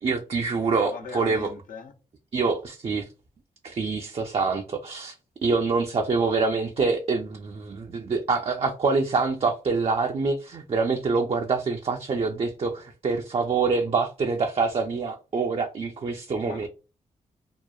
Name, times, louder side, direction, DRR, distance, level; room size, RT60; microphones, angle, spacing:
voice 1, 0.0-1.5 2.3-3.1 3.6-5.1 5.4-16.7, right 4 dB, 45° right, 0.4 m, -25 dB
voice 2, 0.9-1.9 16.4-16.7, left 5 dB, 70° left, 0.6 m, -39 dB
2.9 x 2.0 x 2.3 m
cardioid pair, 60°, 14 cm